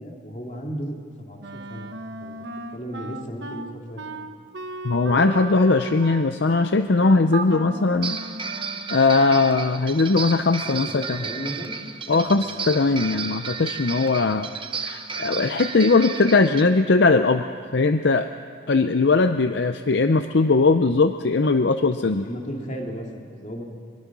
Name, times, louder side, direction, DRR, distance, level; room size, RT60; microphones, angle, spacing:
voice 1, 0.0-1.9 2.2-2.4 2.7-4.3 10.6-11.8 12.2-12.4 22.2-23.6, equal, 40° left, 1 dB, 2.6 m, -35 dB
Wind instrument woodwind instrument, 1.4-9.0, right 3 dB, 65° right, 1.0 m, -37 dB
voice 2, 4.8-8.2 8.9-11.2 12.1-14.5 14.8-17.4 17.7-18.3 18.7-22.3, left 3 dB, 60° left, 8 dB, 0.6 m, -20 dB
sound 1, 7.3-7.4 8.0-16.6, right 5 dB, 25° right, 0.9 m, -33 dB
23.5 x 22.0 x 6.1 m, 2.2 s
head